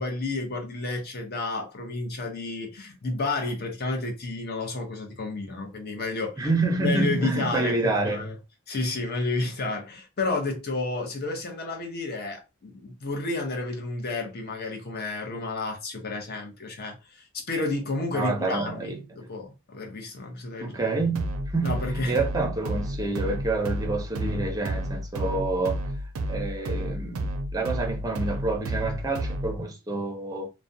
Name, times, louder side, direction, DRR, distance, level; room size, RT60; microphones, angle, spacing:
voice 1, 0.0-6.5 6.8-8.3 8.7-20.8 21.6-22.2, left 3 dB, 45° left, 0.7 m, -31 dB
voice 2, 6.4-8.3 18.1-19.0 20.6-25.8 26.3-30.5, right 3 dB, 15° right, 0.5 m, -28 dB
sound 1, 21.1-29.6, right 1 dB, 70° right, 0.4 m, -31 dB
2.4 x 2.1 x 2.6 m
head